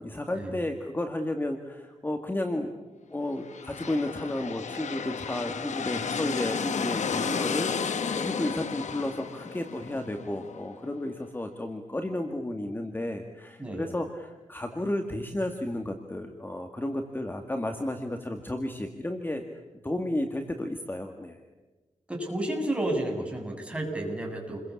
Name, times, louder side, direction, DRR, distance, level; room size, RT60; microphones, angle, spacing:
voice 1, 0.0-2.7 3.1-19.4 19.8-21.4, left 1 dB, 15° left, 5 dB, 2.1 m, -32 dB
sound 1, 3.4-11.1, left 6 dB, 80° left, 1.6 m, -33 dB
voice 2, 22.1-24.6, right 1 dB, 10° right, 1 dB, 7.7 m, -31 dB
29.5 x 22.5 x 8.6 m, 1.2 s
wide cardioid pair, 110°, 12 cm